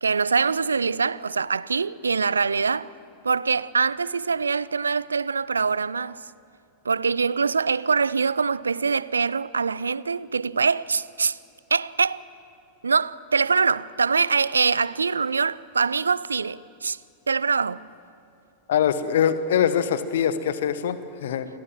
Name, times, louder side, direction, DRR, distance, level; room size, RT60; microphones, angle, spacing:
voice 1, 0.0-2.9 3.2-6.2 6.8-11.4 11.7-12.2 12.8-17.0 17.3-17.8, right 5 dB, 75° right, 0.5 m, -24 dB
voice 2, 18.7-21.5, left 8 dB, 60° left, 1.3 m, -23 dB
28.5 x 21.0 x 7.5 m
figure-of-eight pair, 90°, 0 cm